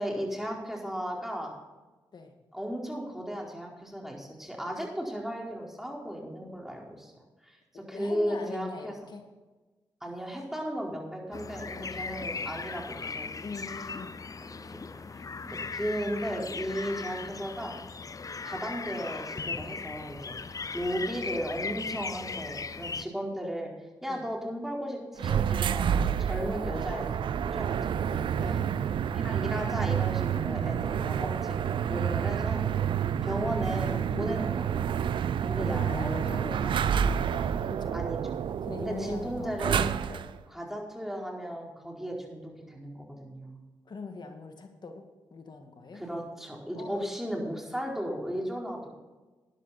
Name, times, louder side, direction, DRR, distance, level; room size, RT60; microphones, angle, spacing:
voice 1, 0.0-1.5 2.5-7.1 7.4-9.0 10.0-13.3 14.5-14.8 15.1-17.7 18.4-20.4 20.7-23.7 24.0-28.3 29.1-32.7 33.2-34.8 35.4-36.3 37.9-38.2 38.8-39.9 40.5-43.6 45.9-48.9, equal, 5° right, -1 dB, 4.5 m, -35 dB
voice 2, 7.7-9.2 11.8-12.1 13.4-14.2 17.3-17.5 20.4-20.7 24.1-24.3 28.4-28.8 34.0-34.4 35.5-38.0 38.6-39.5 40.1-40.4 43.9-45.1 45.3-46.0 46.8-47.1, left 4 dB, 55° left, 5 dB, 2.1 m, -42 dB
sound 1, 11.3-23.0, left 4 dB, 40° left, 0.7 m, -38 dB
sound 2, 25.2-40.4, right 8 dB, 70° right, 0.5 m, -29 dB
12.5 x 10.5 x 4.3 m, 1.2 s
supercardioid pair, 45°, 9 cm